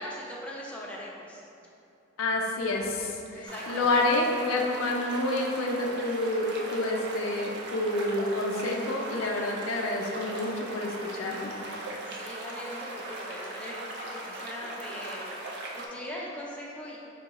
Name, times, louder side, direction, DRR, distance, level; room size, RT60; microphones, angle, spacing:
voice 1, 0.0-1.4 3.4-4.0 12.1-15.3 15.7-17.0, left 1 dB, 5° left, -5 dB, 0.4 m, -40 dB
voice 2, 2.2-11.5, left 2 dB, 85° left, 0 dB, 0.4 m, -28 dB
sound 1, 3.5-15.9, right 1 dB, 55° right, 0.4 m, -39 dB
4.6 x 2.3 x 2.9 m, 2.6 s
head